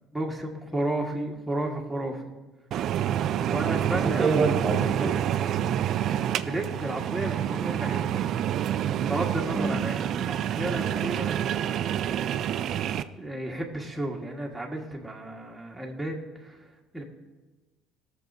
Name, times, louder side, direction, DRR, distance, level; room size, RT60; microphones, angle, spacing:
voice 1, 0.1-2.3 3.5-4.3 6.4-8.3 9.0-12.4 13.1-16.6 16.9-17.0, right 1 dB, 5° right, -2 dB, 1.4 m, -33 dB
sound 1, 2.7-13.0, right 10 dB, 55° right, 0.4 m, -28 dB
voice 2, 3.9-5.3 9.5-9.8, right 3 dB, 25° right, 0 dB, 1.0 m, -27 dB
20.5 x 6.9 x 2.7 m, 1.2 s
cardioid pair, 135°, 0 cm